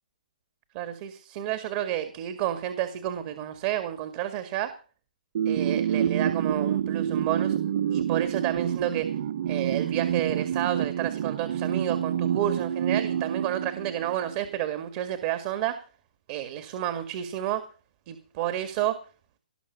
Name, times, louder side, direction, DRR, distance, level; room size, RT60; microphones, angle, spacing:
voice 1, 0.7-4.7 5.5-7.6 7.9-9.1 9.5-15.8 16.3-17.6 18.1-19.0, right 12 dB, 40° right, 10 dB, 1.9 m, -30 dB
sound 1, 5.3-14.4, right 9 dB, 55° right, 1.0 m, -28 dB
18.5 x 6.4 x 8.9 m, 0.37 s
hypercardioid pair, 135°, 4 cm